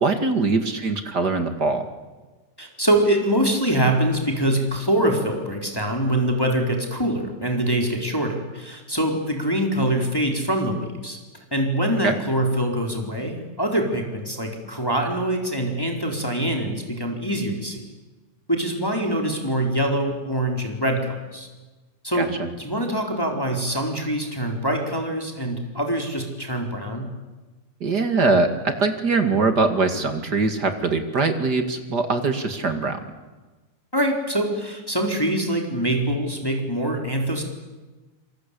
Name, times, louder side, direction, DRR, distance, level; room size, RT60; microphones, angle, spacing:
voice 1, 0.0-1.9 12.0-12.1 22.2-22.5 27.8-33.0, right 3 dB, 35° right, 8 dB, 2.2 m, -22 dB
voice 2, 2.6-11.2 11.5-17.8 18.5-21.5 22.0-22.3 22.6-27.1 33.9-37.4, right 1 dB, 5° left, 2 dB, 3.8 m, -24 dB
27.5 x 23.5 x 8.5 m, 1.2 s
omnidirectional pair, 3.7 m